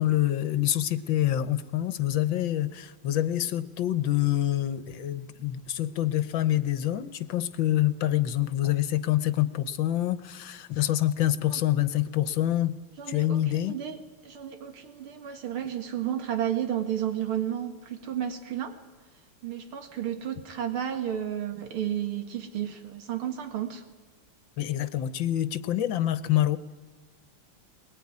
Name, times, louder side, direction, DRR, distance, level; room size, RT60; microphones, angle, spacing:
voice 1, 0.0-12.8 13.1-13.8 24.6-26.6, left 13 dB, 70° left, 14 dB, 1.7 m, -26 dB
voice 2, 13.0-14.0 14.2-18.8 19.4-23.8, right 10 dB, 90° right, 7 dB, 2.6 m, -32 dB
21.5 x 21.5 x 9.8 m, 1.3 s
omnidirectional pair, 2.3 m